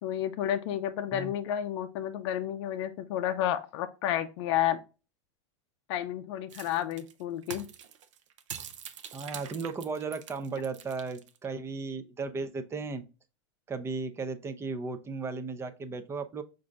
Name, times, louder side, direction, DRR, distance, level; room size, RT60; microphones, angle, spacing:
voice 1, 0.0-4.8 5.9-7.7, left 11 dB, 65° left, 0.5 m, -31 dB
sound 1, 6.5-11.5, right 8 dB, 90° right, 0.6 m, -44 dB
voice 2, 9.1-13.0 13.7-16.4, right 4 dB, 15° right, 0.5 m, -35 dB
5.0 x 2.6 x 3.4 m
supercardioid pair, 120°, 15 cm